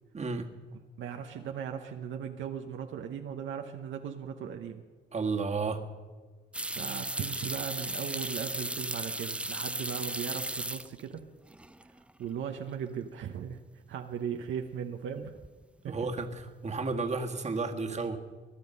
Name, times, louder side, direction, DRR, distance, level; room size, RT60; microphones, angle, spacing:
voice 1, 0.1-0.5 5.1-5.8 15.1-15.2 15.8-18.2, right 4 dB, 35° right, 4 dB, 1.7 m, -32 dB
voice 2, 1.0-4.8 6.7-11.2 12.2-13.6 13.9-15.4 15.8-15.9, right 8 dB, 75° right, 4 dB, 1.0 m, -38 dB
sound 1, 6.5-11.2 11.5-12.1 12.4-12.5 15.2-15.6 15.9-16.4, right 1 dB, 5° right, 0.5 m, -36 dB
21.5 x 11.0 x 5.5 m, 1.4 s
cardioid pair, 90°, 20 cm